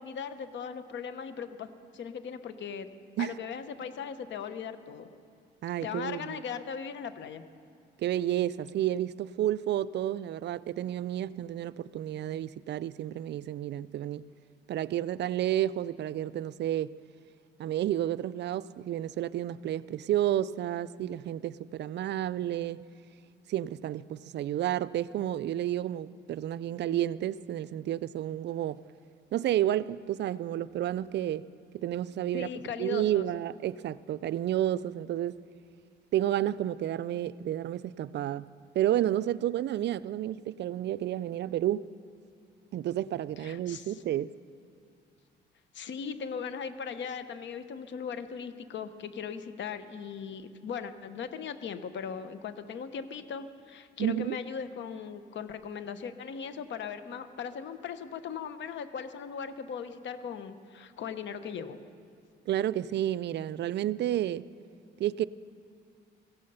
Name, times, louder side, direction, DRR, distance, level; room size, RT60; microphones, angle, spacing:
voice 1, 0.0-2.9 3.2-5.1 5.8-7.4 32.3-33.2 43.4-44.0 45.7-61.8, left 7 dB, 65° left, 1.0 m, -38 dB
voice 2, 5.6-6.4 8.0-14.3 14.7-16.9 17.6-22.8 23.5-28.8 29.3-31.5 31.7-32.5 32.8-35.4 36.1-38.5 38.7-41.9 42.7-44.3 54.0-54.4 62.5-64.5 65.0-65.2, right 12 dB, 60° right, 0.4 m, -31 dB
16.0 x 15.5 x 5.6 m
cardioid pair, 90°, 20 cm